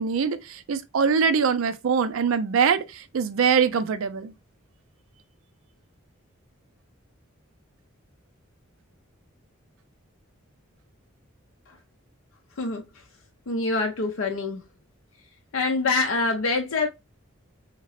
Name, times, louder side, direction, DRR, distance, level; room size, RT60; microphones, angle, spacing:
voice 1, 0.0-4.3, right 6 dB, 75° right, 0.4 m, -23 dB
voice 2, 13.5-14.6 15.5-16.9, left 3 dB, 75° left, 0.5 m, -25 dB
2.9 x 2.9 x 2.5 m
head